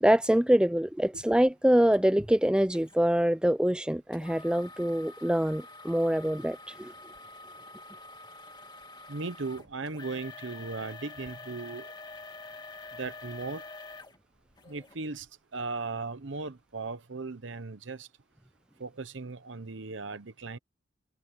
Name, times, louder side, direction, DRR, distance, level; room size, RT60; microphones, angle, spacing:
voice 1, 0.0-6.9, equal, 5° right, 0.4 m, -25 dB
sound 1, 1.9-2.0 2.7-3.0 4.1-15.0 15.5-15.6 16.2-16.4, left 3 dB, 20° left, 2.4 m, -47 dB
voice 2, 9.1-11.9 13.0-13.6 14.7-15.3 15.5-18.1 18.8-20.6, right 3 dB, 70° right, 0.9 m, -37 dB
head